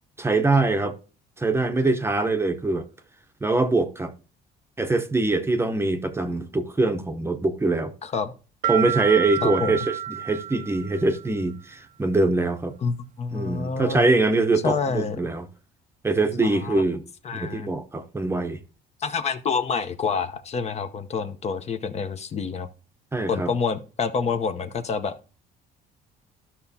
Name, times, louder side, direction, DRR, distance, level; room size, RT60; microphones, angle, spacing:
voice 1, 0.2-0.9 1.4-2.9 3.4-4.1 4.8-7.9 8.7-12.7 13.3-15.5 16.0-17.0 17.3-18.6 23.1-23.5, right 2 dB, 15° right, 0.7 m, -23 dB
voice 2, 8.0-8.3 9.4-9.8 12.8-14.1 14.6-15.2 16.4-16.8 17.2-17.7 19.0-22.7 23.3-25.4, left 5 dB, 40° left, 0.8 m, -28 dB
sound 1, 8.6-11.3, right 10 dB, 50° right, 0.4 m, -29 dB
13.0 x 5.8 x 2.8 m
cardioid pair, 110°, 17 cm